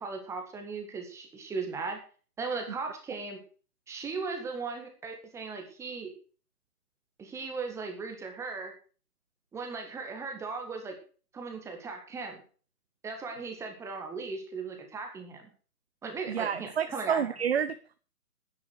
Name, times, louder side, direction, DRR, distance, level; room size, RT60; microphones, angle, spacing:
voice 1, 0.0-2.0 2.4-3.4 3.9-6.1 7.2-8.7 9.5-11.0 11.3-12.4 13.0-15.5 16.0-17.3, right 4 dB, 5° right, 4 dB, 1.7 m, -37 dB
voice 2, 16.3-18.0, right 8 dB, 40° right, 11 dB, 0.8 m, -30 dB
11.0 x 9.9 x 6.6 m, 0.40 s
figure-of-eight pair, 140°, 47 cm